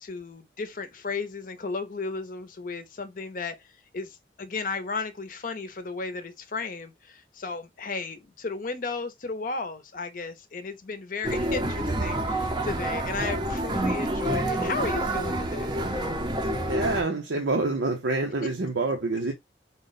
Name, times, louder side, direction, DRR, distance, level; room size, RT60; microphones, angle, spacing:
voice 1, 0.0-15.7 18.4-18.5, left 4 dB, 45° left, 0.6 m, -34 dB
sound 1, 11.2-17.0, right 1 dB, 25° right, 0.5 m, -28 dB
voice 2, 16.7-19.3, right 2 dB, 90° right, 0.7 m, -27 dB
3.9 x 2.1 x 3.9 m
head